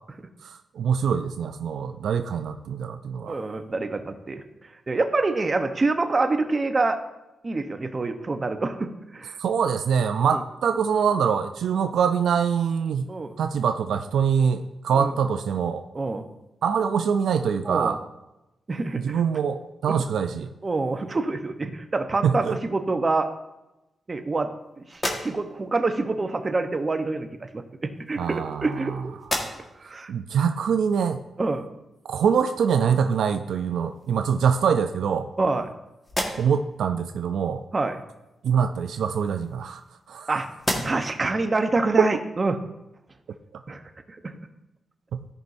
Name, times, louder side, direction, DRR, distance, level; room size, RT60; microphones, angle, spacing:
voice 1, 0.4-3.4 9.4-13.1 13.4-15.8 16.6-18.0 19.0-20.5 22.2-22.6 28.2-29.0 30.1-31.2 32.1-35.3 36.4-37.6 38.4-39.8 40.1-40.3 42.0-42.1 45.1-45.2, right 7 dB, 85° right, 8 dB, 0.4 m, -24 dB
voice 2, 3.3-4.4 4.9-7.0 7.4-9.4 10.3-10.4 13.1-13.3 14.9-15.1 15.9-16.2 17.6-18.0 18.7-19.2 19.9-20.0 20.6-23.3 24.1-24.5 24.8-29.2 29.8-30.1 31.4-31.7 35.4-35.7 37.7-38.0 40.3-40.5 40.8-42.6 43.7-43.8 44.2-44.3, right 3 dB, 35° right, 7 dB, 0.8 m, -26 dB
sound 1, 24.9-25.7 26.9-27.0 28.0-28.8 29.2-29.9 30.4-30.5 33.2-33.3 33.7-34.4 35.0-35.7 36.0-36.7 38.7-40.2 40.6-41.2, left 1 dB, 25° left, 1.5 m, -33 dB
13.5 x 5.5 x 2.6 m, 0.95 s
cardioid pair, 75°, 0 cm